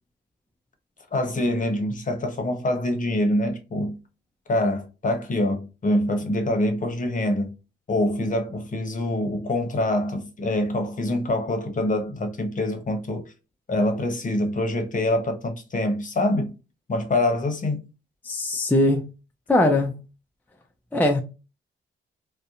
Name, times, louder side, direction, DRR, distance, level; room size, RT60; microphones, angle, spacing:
voice 1, 1.1-4.0 4.5-7.5 7.9-13.3 13.7-16.5 16.9-17.9, left 1 dB, 40° left, 0.9 m, -25 dB
voice 2, 18.2-19.0 19.5-19.9 20.9-21.2, left 1 dB, 10° left, 0.4 m, -20 dB
2.6 x 2.1 x 2.4 m
supercardioid pair, 55°, 20 cm